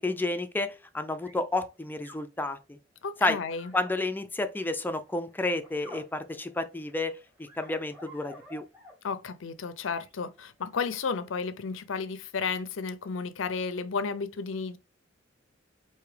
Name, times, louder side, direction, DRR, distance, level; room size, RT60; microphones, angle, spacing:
voice 1, 0.0-2.8 3.2-3.4 3.7-7.1 7.6-8.6, left 2 dB, 10° left, 0.4 m, -30 dB
sound 1, 1.2-1.5 2.0-2.2 3.2-3.9 4.7-9.0 9.8-10.4 11.1-11.2, equal, 10° right, 1.3 m, -51 dB
voice 2, 3.0-3.7 9.0-14.8, left 5 dB, 75° left, 0.5 m, -33 dB
4.8 x 2.7 x 3.2 m
head